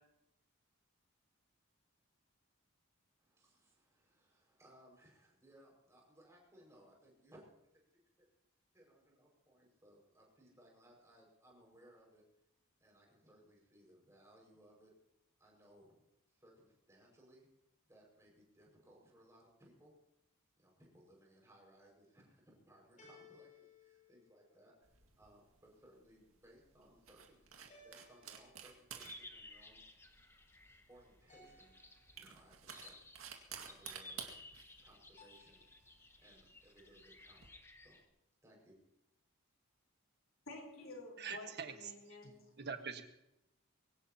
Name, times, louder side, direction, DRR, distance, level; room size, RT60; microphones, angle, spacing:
voice 1, 3.3-7.5 7.7-7.8 8.2-8.3 8.7-12.2 12.8-14.9 15.4-15.9 16.4-17.5 17.9-19.9 20.6-24.7 25.2-27.4 27.8-29.8 30.9-31.8 32.1-32.9 33.5-34.4 34.8-35.6 36.2-37.4 37.8-38.0 38.4-38.8, right 1 dB, 15° right, -2 dB, 5.6 m, -64 dB
sound 1, 18.6-19.2 23.0-25.0 27.7-29.1 31.3-32.5 35.2-36.1, left 3 dB, 35° left, 5.6 m, -64 dB
sound 2, 24.8-37.5, right 8 dB, 75° right, 2.1 m, -54 dB
sound 3, 28.9-38.0, left 2 dB, 10° left, 1.0 m, -57 dB
voice 2, 40.5-42.5, left 2 dB, 65° left, 0 dB, 4.1 m, -51 dB
voice 3, 41.2-41.7 42.2-43.0, right 6 dB, 50° right, 6 dB, 1.4 m, -44 dB
22.5 x 17.5 x 2.9 m, 0.84 s
head